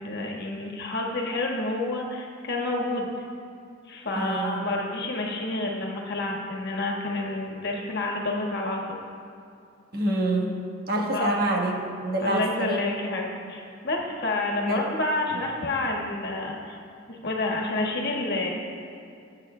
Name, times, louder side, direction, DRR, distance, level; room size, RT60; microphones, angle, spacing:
voice 1, 0.0-3.1 3.9-9.0 11.1-11.3 12.2-16.8 17.1-18.5, left 2 dB, 60° left, -1 dB, 1.5 m, -29 dB
voice 2, 4.1-4.7 9.9-10.6 10.9-12.8 14.6-14.8, right 1 dB, 55° right, 0 dB, 1.2 m, -26 dB
19.0 x 8.3 x 2.2 m, 2.5 s
head